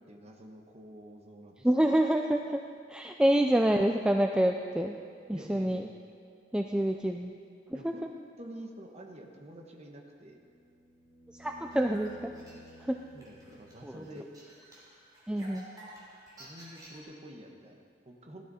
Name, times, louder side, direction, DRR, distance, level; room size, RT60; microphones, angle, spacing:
voice 1, 0.1-1.7 5.3-5.8 7.7-8.1 8.4-10.4 13.1-14.3 16.4-18.5, right 1 dB, 35° right, 1 dB, 1.3 m, -48 dB
voice 2, 1.6-2.6 2.9-5.0 5.3-5.9 6.5-7.3 7.8-7.9 11.4-12.3 12.8-13.0 13.8-13.9 15.3-15.7, right 1 dB, 5° right, 3 dB, 0.4 m, -27 dB
sound 1, 10.4-14.4 16.8-16.9, equal, 80° left, 3.0 m, -53 dB
sound 2, 11.5-17.0, right 1 dB, 20° right, 3.5 m, -53 dB
16.5 x 12.0 x 4.2 m, 2.2 s
head